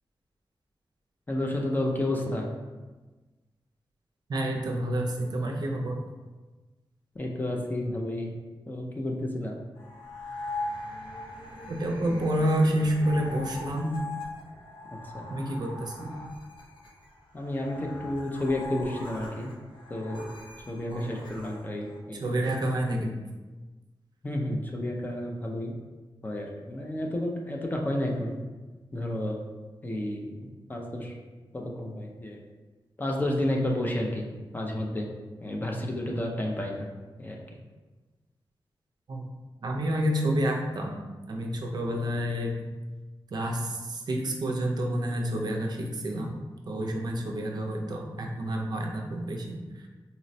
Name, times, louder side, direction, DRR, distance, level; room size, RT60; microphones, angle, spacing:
voice 1, 1.3-2.5 7.2-8.3 8.7-9.6 14.9-15.3 17.3-19.5 19.9-20.3 20.7-22.3 24.2-25.7 26.2-28.3 28.9-29.4 29.8-31.1 31.5-32.4 33.0-34.3 34.5-35.1 35.4-36.9 37.2-37.4, left 1 dB, 20° left, 0 dB, 0.4 m, -31 dB
voice 2, 4.3-6.0 11.7-14.1 15.3-16.2 20.9-21.2 22.1-23.1 39.1-39.2 39.6-41.0 41.3-42.6 43.3-46.3 46.7-49.9, right 1 dB, 50° right, 1 dB, 0.4 m, -29 dB
sound 1, 9.8-22.0, left 2 dB, 65° left, 0.6 m, -40 dB
4.0 x 2.0 x 2.6 m, 1.2 s
wide cardioid pair, 175°, 9 cm